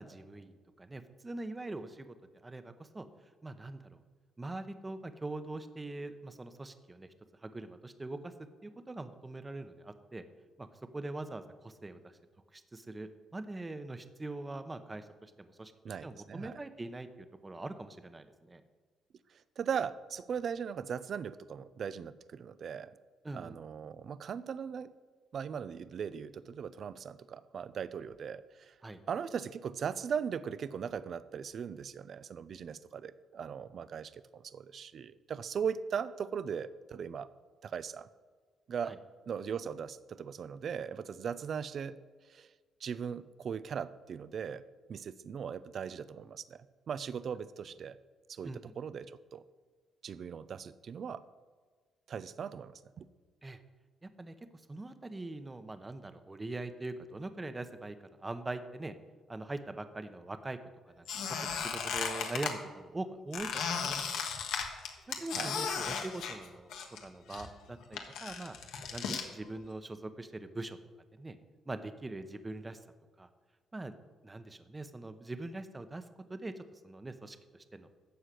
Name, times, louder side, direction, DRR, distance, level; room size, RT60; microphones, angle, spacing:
voice 1, 0.0-2.1 2.4-3.1 3.4-4.0 4.4-7.1 7.4-8.3 8.6-10.2 10.6-10.7 10.9-12.2 12.5-18.6 23.2-23.6 28.8-29.0 38.8-39.0 48.4-48.7 53.4-53.6 54.0-54.3 54.7-58.9 59.3-60.6 60.9-64.0 65.1-66.7 67.0-68.6 68.9-70.8 71.1-71.4 71.7-72.8 73.2-73.3 73.7-73.9 74.2-76.0 76.3-77.9, right 2 dB, 20° right, 9 dB, 1.0 m, -42 dB
voice 2, 15.8-16.6 19.3-22.9 23.3-24.9 25.3-28.7 29.1-37.3 37.6-38.1 38.7-39.0 39.3-42.0 42.3-42.5 42.8-44.6 44.9-48.0 48.3-49.4 50.0-51.2 52.1-53.0 65.3-65.5, right 7 dB, 55° right, 16 dB, 0.5 m, -39 dB
Squeak, 61.1-62.5 63.3-67.0 67.3-69.3, left 6 dB, 85° left, 1.5 m, -36 dB
13.5 x 4.8 x 8.4 m, 1.5 s
cardioid pair, 90°, 0 cm